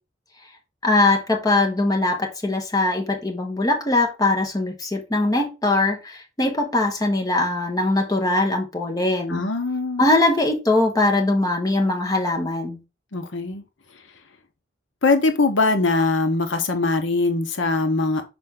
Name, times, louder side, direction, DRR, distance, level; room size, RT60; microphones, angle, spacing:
voice 1, 0.8-9.4 10.0-12.8, left 2 dB, 20° left, 1.3 m, -21 dB
voice 2, 9.3-10.0 13.1-13.6 15.0-18.2, left 3 dB, 75° left, 0.9 m, -21 dB
6.1 x 4.4 x 3.7 m
head